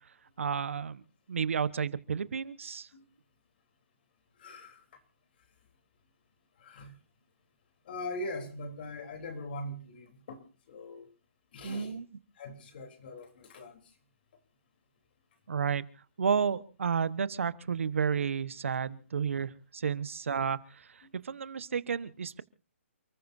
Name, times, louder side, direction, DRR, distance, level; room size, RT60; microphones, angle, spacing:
voice 1, 0.4-1.0 1.3-2.9 11.6-12.0 15.5-15.8 16.2-20.9 21.2-22.4, right 6 dB, 75° right, 1.2 m, -31 dB
voice 2, 4.4-4.8 6.6-6.9 7.8-11.1 11.5-12.0 12.3-13.9 18.9-19.0, left 1 dB, 45° left, 3.5 m, -42 dB
29.0 x 14.5 x 2.7 m
hypercardioid pair, 160°, 7 cm